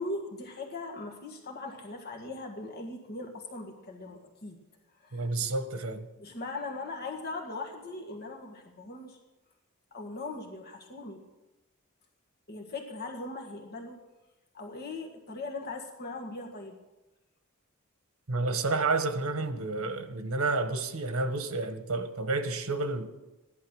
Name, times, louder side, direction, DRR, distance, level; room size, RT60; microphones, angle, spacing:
voice 1, 0.0-4.6 5.0-5.3 6.2-9.2 9.9-11.2 12.5-14.0 14.5-16.8, left 2 dB, 50° left, 1.8 m, -39 dB
voice 2, 5.1-6.1 18.3-23.1, right 3 dB, 80° right, 1.3 m, -30 dB
15.5 x 11.5 x 6.4 m
head